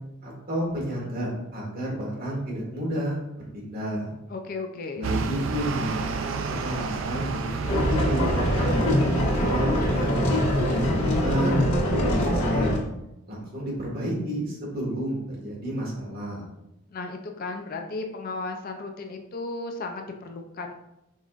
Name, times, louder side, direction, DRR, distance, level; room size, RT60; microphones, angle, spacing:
voice 1, 0.2-4.1 4.9-6.0 6.5-9.0 9.4-12.8 13.3-16.4, right 1 dB, 45° right, -4 dB, 1.6 m, -31 dB
voice 2, 4.3-5.1 16.9-20.7, left 3 dB, 40° left, 4 dB, 0.4 m, -35 dB
sound 1, 5.0-11.7, right 4 dB, 65° right, 0.4 m, -31 dB
sound 2, 7.6-12.8, left 1 dB, 90° left, 1.4 m, -23 dB
5.5 x 3.6 x 2.4 m, 0.86 s
head